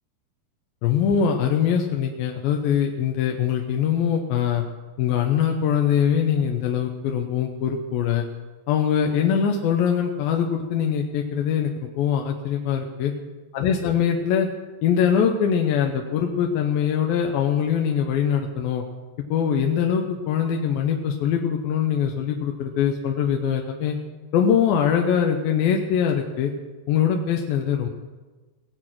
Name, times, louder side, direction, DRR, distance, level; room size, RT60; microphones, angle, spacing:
voice 1, 0.8-4.6 5.0-8.3 8.7-13.1 13.5-14.5 14.8-18.8 19.3-24.0 24.3-26.5 26.9-27.9, left 8 dB, 80° left, 2 dB, 2.7 m, -22 dB
19.0 x 8.1 x 6.0 m, 1.3 s
omnidirectional pair, 4.1 m